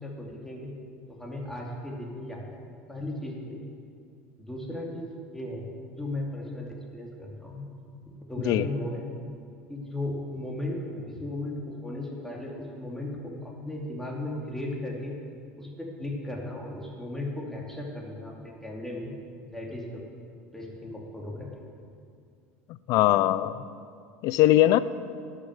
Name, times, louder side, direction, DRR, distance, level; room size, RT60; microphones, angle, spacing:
voice 1, 0.0-0.7 1.1-2.6 2.9-3.6 4.4-7.6 8.2-9.1 9.7-15.2 15.6-19.1 19.5-20.0 20.5-21.7, left 1 dB, 5° left, -2 dB, 2.7 m, -36 dB
voice 2, 22.9-23.6 24.2-24.8, left 14 dB, 55° left, 16 dB, 0.5 m, -21 dB
11.5 x 6.4 x 7.8 m, 2.3 s
hypercardioid pair, 80°, 7 cm